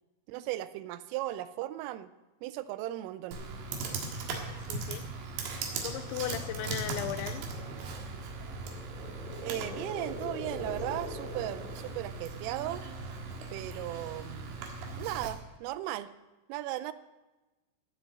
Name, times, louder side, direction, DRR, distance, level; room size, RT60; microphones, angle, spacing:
voice 1, 0.3-2.1 2.4-3.4 9.4-12.8 13.5-14.6 15.0-16.1 16.5-16.9, right 14 dB, 90° right, 13 dB, 3.2 m, -36 dB
Computer keyboard, 3.3-15.3, right 3 dB, 75° right, 4.0 m, -39 dB
voice 2, 4.6-5.1 5.4-7.5, left 12 dB, 85° left, 10 dB, 2.7 m, -37 dB
sound 1, 8.3-12.6, left 1 dB, 30° left, 2.8 m, -43 dB
17.5 x 6.4 x 7.5 m, 1.1 s
omnidirectional pair, 5.7 m